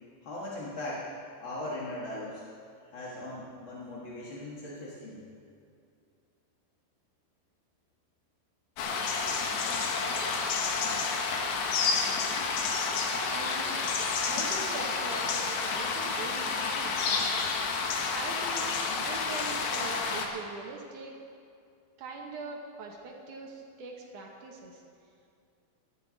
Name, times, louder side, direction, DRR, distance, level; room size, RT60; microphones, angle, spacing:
voice 1, 0.2-1.1 1.4-2.4 2.9-5.2, left 1 dB, 50° left, -5 dB, 1.5 m, -39 dB
sound 1, 8.8-20.3, left 4 dB, 75° left, 2.9 m, -30 dB
voice 2, 13.3-13.8 14.3-17.0 18.1-18.7 19.0-21.1 22.0-24.8, right 3 dB, 65° right, 1 dB, 2.2 m, -42 dB
17.0 x 13.0 x 4.0 m, 2.4 s
omnidirectional pair, 4.5 m